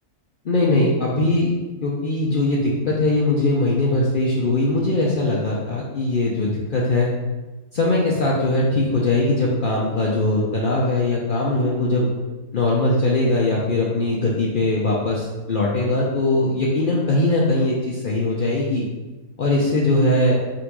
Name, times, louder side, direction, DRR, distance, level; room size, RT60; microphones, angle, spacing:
voice 1, 0.4-1.5 1.8-7.1 7.7-12.1 12.5-18.8 19.4-20.4, left 2 dB, 75° left, -4 dB, 0.4 m, -20 dB
3.8 x 2.6 x 4.5 m, 1.2 s
omnidirectional pair, 1.6 m